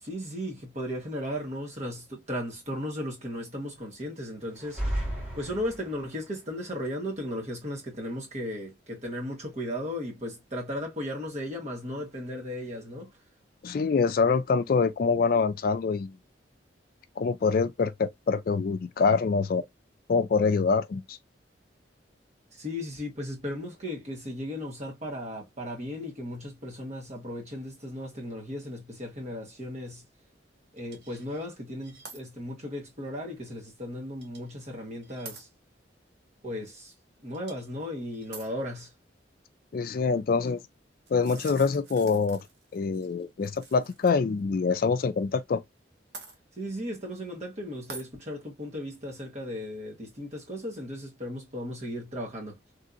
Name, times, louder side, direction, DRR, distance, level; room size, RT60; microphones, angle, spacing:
voice 1, 0.0-4.8 5.3-13.1 22.5-30.0 30.7-35.5 36.4-36.9 37.2-38.9 46.6-52.6, equal, 40° right, 1.5 m, -36 dB
sound 1, 4.5-6.2, right 1 dB, 5° right, 1.6 m, -33 dB
voice 2, 13.6-16.2 17.2-19.6 20.1-21.2 39.7-40.6 41.1-42.4 42.7-45.6, left 5 dB, 50° left, 0.3 m, -25 dB
sound 2, 30.8-31.5 31.8-32.2 32.7-32.8 34.2-34.6 35.0-35.4 37.3-37.7 38.1-38.5 41.1-44.1 44.4-44.5 46.1-46.4 47.9-48.1, right 4 dB, 65° right, 1.1 m, -47 dB
3.3 x 2.8 x 2.5 m
head